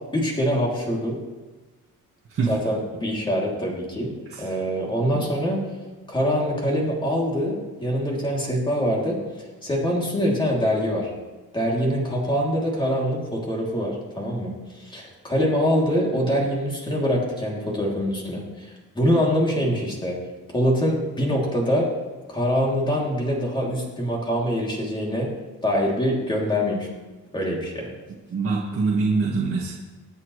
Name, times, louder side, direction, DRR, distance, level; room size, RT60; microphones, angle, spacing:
voice 1, 0.1-1.2 2.5-5.6 6.1-9.2 9.6-11.1 11.5-20.2 20.5-21.9 22.3-25.3 25.6-26.9 27.3-27.9, equal, 15° left, -3 dB, 2.9 m, -24 dB
voice 2, 28.3-29.7, right 4 dB, 45° right, -5 dB, 1.7 m, -24 dB
25.0 x 8.7 x 3.2 m, 1.2 s
wide cardioid pair, 180°, 33 cm